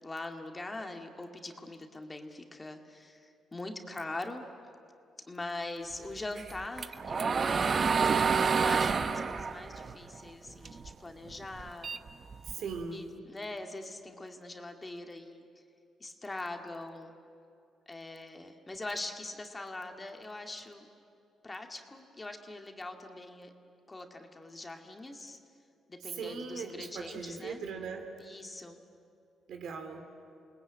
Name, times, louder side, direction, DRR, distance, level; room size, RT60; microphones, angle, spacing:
voice 1, 0.0-4.4 5.3-7.8 8.5-11.9 12.9-15.5 16.0-17.1 17.9-20.9 21.4-23.5 23.9-25.4 25.9-27.6 28.2-28.8, left 2 dB, 20° left, 4 dB, 2.2 m, -42 dB
sound 1, 6.4-10.9 11.3-12.8, right 5 dB, 40° right, 0.9 m, -29 dB
voice 2, 12.5-13.0 26.1-28.1 29.5-30.0, right 5 dB, 70° right, 5 dB, 3.0 m, -39 dB
28.5 x 19.5 x 8.8 m, 2.6 s
cardioid pair, 90°, 0 cm